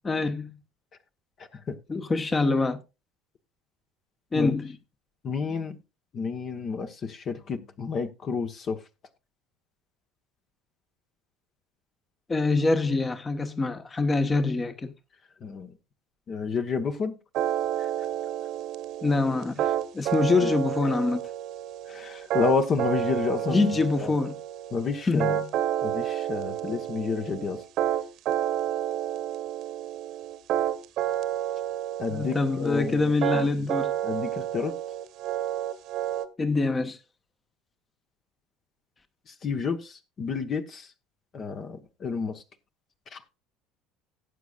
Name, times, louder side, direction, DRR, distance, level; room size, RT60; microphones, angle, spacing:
voice 1, 0.0-0.5 1.9-2.8 4.3-4.7 12.3-14.9 19.0-19.6 19.9-21.2 23.5-24.4 25.1-25.5 32.1-33.9 36.4-37.0, left 3 dB, 20° left, 1.2 m, -25 dB
voice 2, 1.4-1.8 4.3-4.6 5.2-5.8 6.1-8.8 15.4-15.7 16.3-17.2 17.8-17.9 20.4-20.5 21.9-23.6 24.0-24.1 24.7-25.4 25.8-27.6 32.0-33.7 34.0-34.8 39.3-40.9 41.3-42.4 43.1-43.2, left 5 dB, 40° left, 1.2 m, -30 dB
sound 1, 17.3-36.2, right 12 dB, 50° right, 1.2 m, -30 dB
17.5 x 8.3 x 2.4 m
figure-of-eight pair, 65°, 0 cm